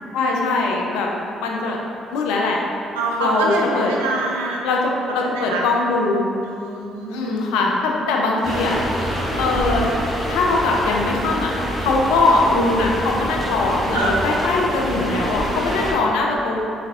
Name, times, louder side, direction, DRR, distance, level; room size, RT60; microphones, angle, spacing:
voice 1, 0.1-1.1 1.4-1.8 2.1-2.6 3.2-3.9 4.6-6.2 7.1-8.8 9.4-9.9 10.3-11.5 11.8-16.6, left 3 dB, 75° left, -1 dB, 0.3 m, -21 dB
voice 2, 2.9-4.6 5.1-5.6 6.4-7.5 13.9-14.1, right 2 dB, 80° right, -2 dB, 0.3 m, -25 dB
sound 1, 8.4-15.9, equal, 20° left, 1.1 m, -26 dB
4.1 x 2.3 x 2.3 m, 2.7 s
hypercardioid pair, 45°, 0 cm